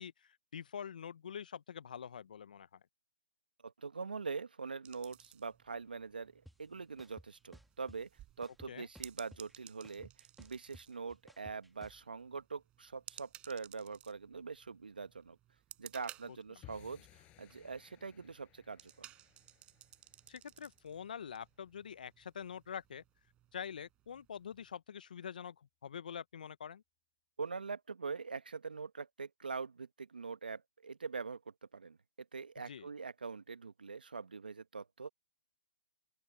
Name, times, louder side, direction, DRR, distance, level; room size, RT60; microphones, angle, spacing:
voice 1, 0.0-2.7 8.7-8.9 16.3-16.4 20.3-23.0 23.5-26.8 32.7-32.9, left 8 dB, 65° left, 1.0 m, -45 dB
voice 2, 3.6-8.1 8.4-10.1 10.4-15.4 15.8-19.1 27.4-31.4 31.7-32.0 32.3-35.1, right 5 dB, 80° right, 1.3 m, -43 dB
sound 1, 4.8-24.7, right 14 dB, 20° right, 5.3 m, -58 dB
sound 2, 6.5-6.6 7.0-8.0 8.4-9.5 9.8-12.0, equal, ahead, 1.9 m, -57 dB
sound 3, 16.6-23.0, left 17 dB, 25° left, 6.0 m, -63 dB
open air
hypercardioid pair, 135°, 5 cm